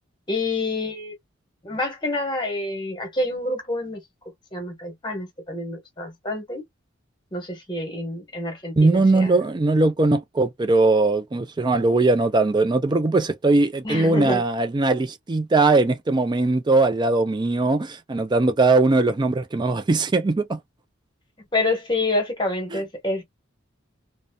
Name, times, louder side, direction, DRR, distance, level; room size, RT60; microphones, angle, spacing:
voice 1, 0.3-1.1 1.6-4.0 4.5-6.6 7.3-9.4 13.8-14.4 21.5-23.2, left 2 dB, 25° left, 1.1 m, -27 dB
voice 2, 8.8-20.6 22.7-22.8, right 3 dB, 20° right, 0.3 m, -20 dB
2.6 x 2.1 x 2.2 m
head